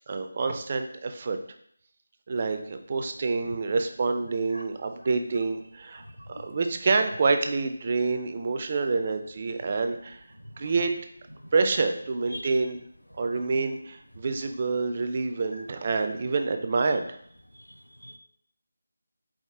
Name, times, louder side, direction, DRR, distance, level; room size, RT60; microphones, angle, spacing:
voice 1, 0.1-1.4 2.3-6.0 6.4-10.2 10.6-10.9 11.5-12.8 13.2-17.1, right 4 dB, 35° right, 6 dB, 0.3 m, -27 dB
voice 2, 5.9-6.5 10.3-10.7 11.4-11.5 12.3-12.6 13.1-13.5 15.5-15.7 17.5-18.2, left 1 dB, 85° left, 7 dB, 0.4 m, -45 dB
4.8 x 2.0 x 3.4 m, 0.66 s
figure-of-eight pair, 160°, 0 cm